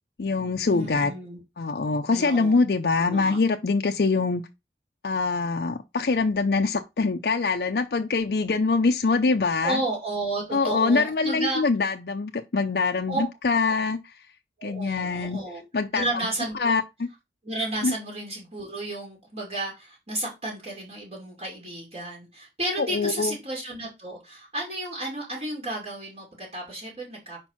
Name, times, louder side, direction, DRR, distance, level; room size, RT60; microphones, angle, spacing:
voice 1, 0.2-1.1 1.6-4.4 5.0-9.8 10.5-14.1 14.6-15.4 15.7-16.0 16.6-17.1 17.8-18.0 22.8-23.3, left 4 dB, 60° left, 0.5 m, -24 dB
voice 2, 0.7-1.4 2.1-2.6 2.9-3.4 9.6-11.6 13.1-13.3 14.6-15.6 15.9-16.7 17.4-27.5, right 2 dB, 35° right, 2.4 m, -32 dB
5.2 x 4.4 x 5.7 m
head